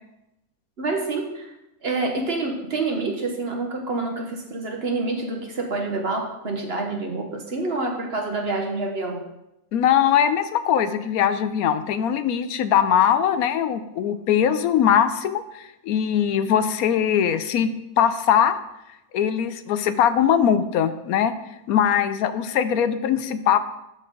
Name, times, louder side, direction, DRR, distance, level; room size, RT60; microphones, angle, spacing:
voice 1, 0.8-1.5 1.8-9.2, right 3 dB, 45° right, 2 dB, 1.2 m, -27 dB
voice 2, 9.7-17.7 18.0-18.6 19.1-21.3 21.7-23.6, left 9 dB, 80° left, 12 dB, 1.0 m, -21 dB
13.0 x 4.3 x 3.8 m, 0.89 s
omnidirectional pair, 1.5 m